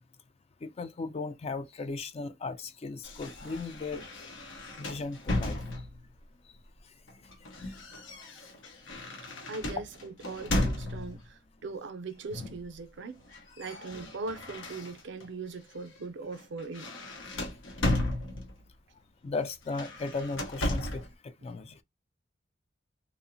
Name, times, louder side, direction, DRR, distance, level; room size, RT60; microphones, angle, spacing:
voice 1, 0.6-4.0 4.8-5.6 19.2-21.8, left 3 dB, 35° left, 0.4 m, -36 dB
sound 1, 3.0-6.1 7.1-11.3 12.3-12.7 13.0-15.3 15.7-16.0 16.3-18.7 19.6-21.1, left 1 dB, 85° left, 0.7 m, -35 dB
voice 2, 9.5-13.2 13.6-16.9, right 4 dB, 65° right, 0.5 m, -40 dB
2.9 x 2.0 x 2.5 m
head